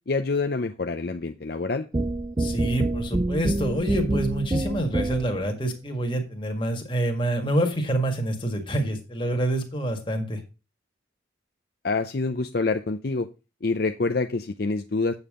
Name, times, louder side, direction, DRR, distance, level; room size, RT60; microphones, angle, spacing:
voice 1, 0.1-1.9 11.8-13.3 13.6-15.1, left 3 dB, 55° left, 7 dB, 0.6 m, -26 dB
sound 1, 1.9-5.5, right 2 dB, 20° right, 0.3 m, -26 dB
voice 2, 2.4-10.4, right 1 dB, 25° left, 3 dB, 1.8 m, -27 dB
8.6 x 7.2 x 3.6 m, 0.29 s
head